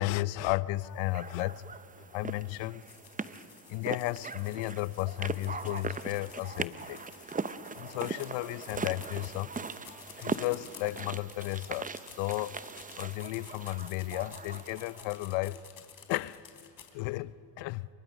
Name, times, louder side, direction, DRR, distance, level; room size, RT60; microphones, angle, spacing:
voice 1, 0.0-2.8 3.7-7.1 7.8-9.5 9.9-11.9 12.2-12.6 13.0-15.6 16.1-17.9, left 18 dB, 75° left, 0.7 m, -34 dB
sound 1, 1.1-15.2, right 4 dB, 20° right, 0.8 m, -40 dB
sound 2, 2.8-16.9, left 7 dB, 45° left, 3.6 m, -52 dB
28.5 x 24.5 x 6.3 m
supercardioid pair, 80°, 45 cm